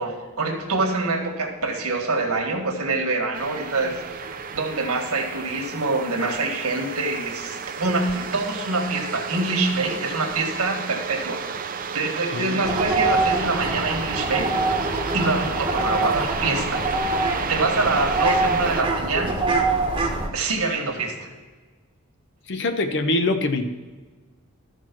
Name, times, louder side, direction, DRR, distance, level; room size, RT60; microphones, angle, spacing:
voice 1, 0.0-4.0 4.5-11.4 11.9-14.5 15.1-16.8 17.5-19.3 20.3-21.3, right 3 dB, 80° right, 2 dB, 1.7 m, -25 dB
sound 1, 3.3-18.8, right 6 dB, 40° right, 0.5 m, -32 dB
sound 2, 12.6-20.3, right 2 dB, 20° right, 1.2 m, -24 dB
voice 2, 22.5-23.7, left 2 dB, 55° left, 8 dB, 0.7 m, -23 dB
13.0 x 4.5 x 6.0 m, 1.4 s
head